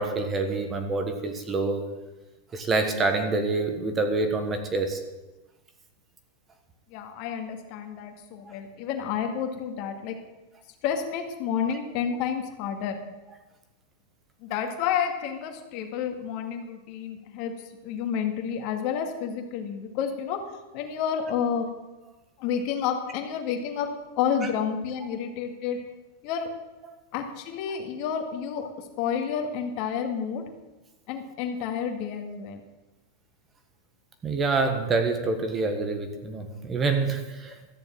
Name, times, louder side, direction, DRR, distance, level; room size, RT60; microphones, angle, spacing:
voice 1, 0.0-1.9 2.5-5.0 8.4-8.5 25.0-25.1 34.2-37.5, right 3 dB, 20° right, 7 dB, 1.4 m, -27 dB
voice 2, 6.9-10.2 10.8-13.0 14.4-17.5 17.8-21.7 22.4-23.9 24.2-25.8 26.2-26.5 27.1-28.7 29.0-30.5 31.1-32.6, left 7 dB, 45° left, 4 dB, 2.1 m, -30 dB
13.5 x 7.0 x 8.9 m, 1.1 s
supercardioid pair, 150°, 0 cm